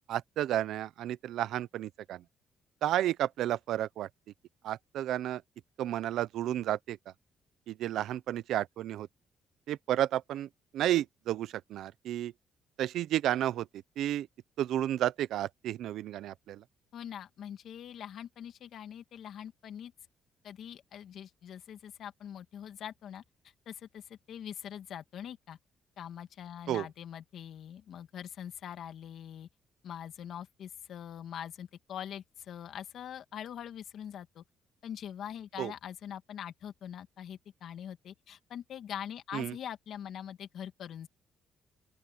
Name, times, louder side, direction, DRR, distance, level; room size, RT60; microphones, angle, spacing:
voice 1, 0.1-2.2 2.8-4.1 4.6-5.4 5.8-7.0 7.7-9.1 9.7-10.5 10.7-12.3 12.8-13.7 14.0-14.3 14.6-16.6 26.7-26.9 35.6-35.7 39.3-39.5, right 12 dB, 80° right, 0.8 m, -32 dB
voice 2, 16.9-19.9 20.4-23.2 23.7-25.6 26.0-29.5 29.8-34.4 34.8-41.1, left 9 dB, 70° left, 2.2 m, -43 dB
open air
cardioid pair, 90°, 0 cm